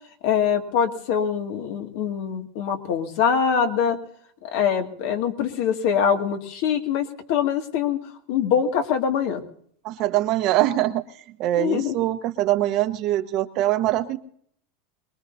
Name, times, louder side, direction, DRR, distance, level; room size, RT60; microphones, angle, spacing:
voice 1, 0.2-4.0 4.4-8.0 8.3-9.4 11.6-11.9, left 7 dB, 65° left, 4 dB, 2.2 m, -23 dB
voice 2, 9.8-11.0 11.4-14.2, right 14 dB, 45° right, 9 dB, 1.1 m, -23 dB
23.5 x 21.0 x 2.8 m, 0.62 s
supercardioid pair, 145°, 0 cm